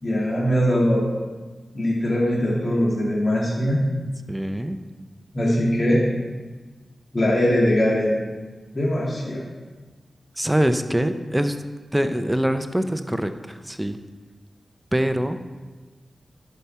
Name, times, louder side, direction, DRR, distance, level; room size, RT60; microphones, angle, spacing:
voice 1, 0.0-1.1 1.7-3.8 5.3-6.0 7.1-8.2 8.7-9.4, equal, 45° left, -5 dB, 2.4 m, -21 dB
voice 2, 4.3-4.8 10.4-11.6 11.9-14.0 14.9-15.4, right 1 dB, 10° right, 9 dB, 0.6 m, -24 dB
11.0 x 5.6 x 4.7 m, 1.3 s
cardioid pair, 65°, 0 cm